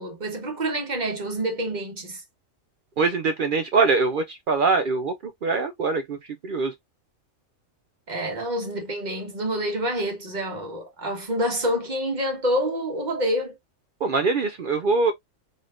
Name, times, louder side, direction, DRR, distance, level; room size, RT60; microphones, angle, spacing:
voice 1, 0.0-2.2 8.1-13.5, equal, 35° right, 1.3 m, -27 dB
voice 2, 3.0-5.1 5.4-6.2 6.4-6.7 14.0-15.1, right 4 dB, 70° right, 0.5 m, -23 dB
3.9 x 3.3 x 2.4 m
omnidirectional pair, 1.4 m